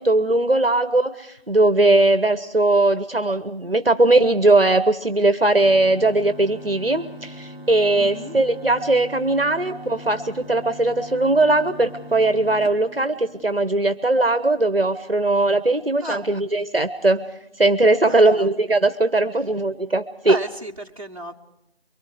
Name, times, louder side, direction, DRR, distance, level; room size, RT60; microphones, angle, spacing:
voice 1, 0.0-17.3 17.6-20.4, right 2 dB, 60° right, 11 dB, 1.2 m, -19 dB
sound 1, 5.6-13.7, equal, 65° left, 3.4 m, -40 dB
voice 2, 7.9-8.4 16.0-16.3 18.1-18.5 20.3-21.3, right 1 dB, 35° right, -3 dB, 1.7 m, -33 dB
25.0 x 23.5 x 4.9 m, 0.86 s
figure-of-eight pair, 180°, 32 cm